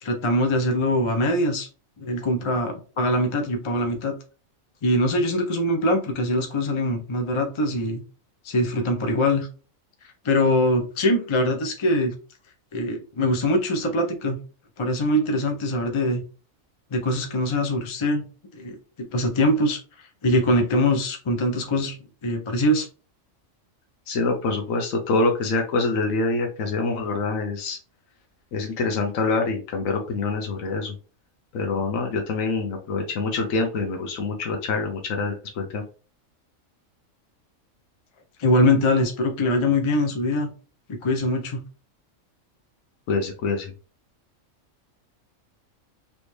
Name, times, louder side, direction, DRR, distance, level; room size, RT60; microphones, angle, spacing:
voice 1, 0.0-1.7 2.0-4.1 4.8-8.0 8.4-9.5 10.2-12.1 12.7-14.4 14.8-16.2 16.9-18.2 18.5-18.8 19.1-19.8 20.2-22.0 22.2-22.9 38.4-40.5 40.9-41.6, left 1 dB, 35° left, 4 dB, 0.5 m, -23 dB
voice 2, 24.1-27.8 28.5-30.9 31.5-35.8 43.1-43.7, left 3 dB, 80° left, 2 dB, 1.1 m, -25 dB
3.3 x 2.8 x 3.1 m, 0.35 s
omnidirectional pair, 1.4 m